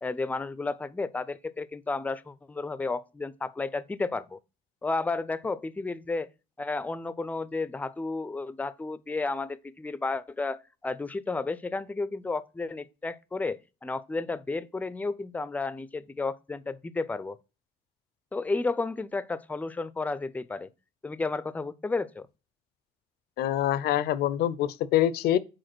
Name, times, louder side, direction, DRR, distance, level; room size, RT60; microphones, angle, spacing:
voice 1, 0.0-4.4 4.8-6.3 6.6-17.4 18.3-20.7 21.0-22.3, left 3 dB, 10° left, 0.4 m, -32 dB
voice 2, 23.4-25.4, left 12 dB, 70° left, 0.5 m, -25 dB
5.1 x 4.3 x 6.0 m
cardioid pair, 110°, 17 cm